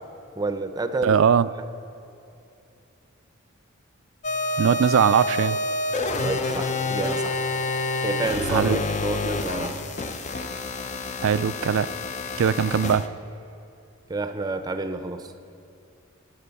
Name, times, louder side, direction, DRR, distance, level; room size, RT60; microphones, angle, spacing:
voice 1, 0.4-1.2 6.2-7.4 8.0-9.8 14.1-15.3, right 3 dB, 20° right, 8 dB, 0.6 m, -29 dB
voice 2, 1.0-1.5 4.6-5.6 8.5-8.8 11.2-11.9 12.4-13.0, right 7 dB, 65° right, 15 dB, 0.4 m, -20 dB
sound 1, 4.2-13.1, left 2 dB, 35° left, 0.6 m, -28 dB
14.5 x 9.3 x 7.0 m, 2.7 s
head